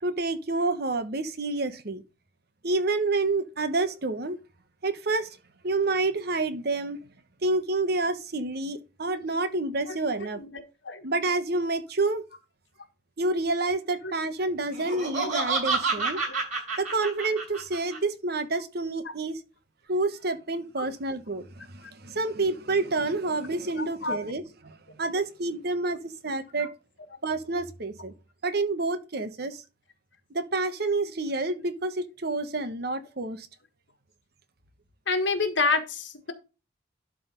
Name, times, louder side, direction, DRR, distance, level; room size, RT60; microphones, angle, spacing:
voice 1, 0.0-2.0 2.6-4.4 4.8-5.3 5.6-7.0 7.4-10.4 11.0-12.2 13.2-16.2 16.8-19.4 19.9-26.7 27.2-28.1 28.4-29.6 30.3-33.5, right 3 dB, 60° right, 1.2 m, -28 dB
voice 2, 10.4-11.0 14.0-14.1 15.2-15.3 16.2-16.4 20.8-20.9 23.8-24.2 26.6-26.7 35.1-36.3, left 3 dB, 80° left, 1.7 m, -28 dB
Laughter, 14.7-18.0, right 4 dB, 45° right, 5.5 m, -29 dB
12.0 x 4.0 x 5.2 m
head